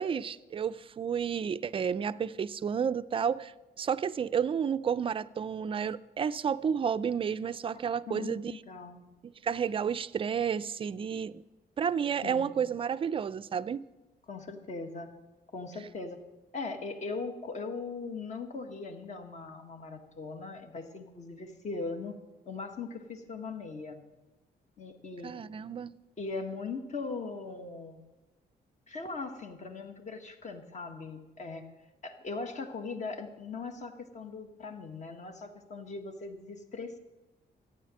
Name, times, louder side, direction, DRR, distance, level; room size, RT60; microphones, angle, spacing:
voice 1, 0.0-8.5 9.2-11.3 11.8-13.8 25.2-25.9, right 7 dB, 30° right, 0.4 m, -31 dB
voice 2, 8.1-9.0 12.2-12.5 14.3-15.1 15.5-16.2 16.5-22.1 22.4-24.0 24.8-25.3 26.2-28.0 28.9-31.7 32.0-37.0, left 4 dB, 45° left, 1.5 m, -39 dB
14.5 x 9.5 x 7.6 m
wide cardioid pair, 160°, 18 cm